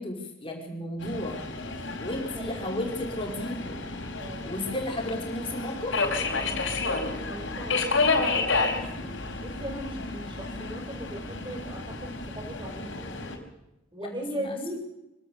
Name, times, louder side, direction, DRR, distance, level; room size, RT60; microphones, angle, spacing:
voice 1, 0.0-1.4 2.0-3.8 4.5-6.0 14.0-14.8, left 1 dB, 25° left, 1 dB, 5.2 m, -34 dB
Subway metro underground, 1.0-13.4, left 3 dB, 65° left, 4.8 m, -31 dB
voice 2, 2.3-2.8 4.2-4.5 6.4-13.0 13.9-14.8, equal, 25° right, 3 dB, 5.1 m, -39 dB
25.0 x 17.5 x 6.7 m, 0.94 s
head